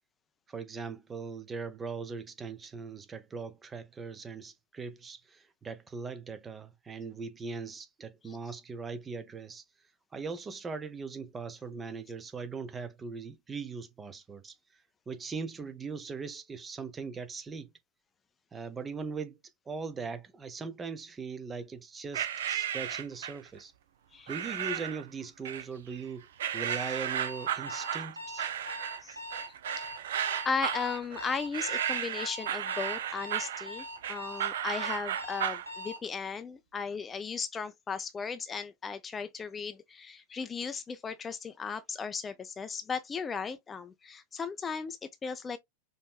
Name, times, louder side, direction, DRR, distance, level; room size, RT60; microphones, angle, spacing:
voice 1, 0.5-9.6 10.1-17.7 18.5-19.4 19.7-23.7 24.3-26.3 26.5-28.5, right 5 dB, 15° right, 0.7 m, -40 dB
sound 1, 22.1-23.5 24.3-25.0 25.4-26.0 26.4-35.7, right 10 dB, 60° right, 0.5 m, -34 dB
Alarm, 26.7-36.1, equal, 80° right, 1.0 m, -42 dB
voice 2, 30.4-45.6, left 5 dB, 20° left, 0.4 m, -36 dB
5.2 x 3.1 x 2.2 m
figure-of-eight pair, 90°, 0 cm